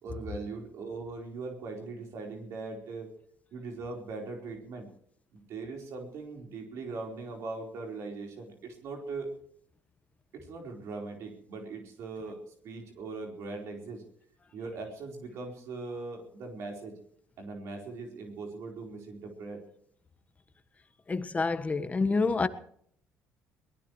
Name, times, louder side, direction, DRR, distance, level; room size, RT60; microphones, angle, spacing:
voice 1, 0.0-3.1 3.5-4.9 5.3-9.3 10.3-14.0 14.5-16.9 17.4-19.6, right 3 dB, 65° right, 4.4 m, -40 dB
voice 2, 21.1-22.5, left 4 dB, 25° left, 1.5 m, -27 dB
22.5 x 18.5 x 3.2 m
supercardioid pair, 70°, 5 cm